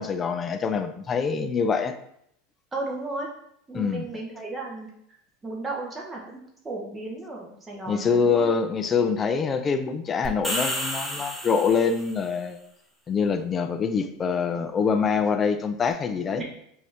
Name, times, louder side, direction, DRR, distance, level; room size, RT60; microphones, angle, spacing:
voice 1, 0.0-1.9 3.7-4.1 7.9-12.6 13.1-16.4, left 5 dB, 30° left, 8 dB, 0.5 m, -25 dB
voice 2, 2.7-3.3 3.7-4.9 5.4-6.4 6.6-8.5 16.4-16.5, right 2 dB, 20° right, -2 dB, 1.1 m, -34 dB
sound 1, 10.2-12.2, equal, ahead, 1.2 m, -31 dB
5.2 x 2.8 x 3.4 m, 0.73 s
hypercardioid pair, 85°, 0 cm